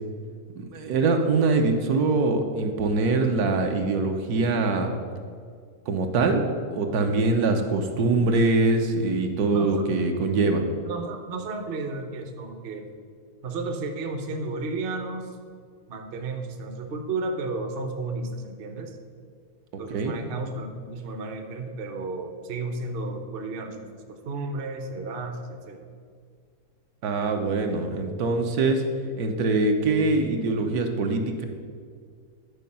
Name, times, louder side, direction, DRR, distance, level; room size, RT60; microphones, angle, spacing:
voice 1, 0.6-4.9 5.9-6.4 6.7-10.6 19.9-20.1 27.0-28.8 29.2-31.5, right 3 dB, 80° right, 4 dB, 1.3 m, -23 dB
voice 2, 9.5-9.9 10.8-12.9 13.4-15.4 15.9-19.0 19.8-25.9, right 3 dB, 50° right, 5 dB, 0.7 m, -33 dB
10.5 x 4.6 x 5.5 m, 2.1 s
omnidirectional pair, 1.6 m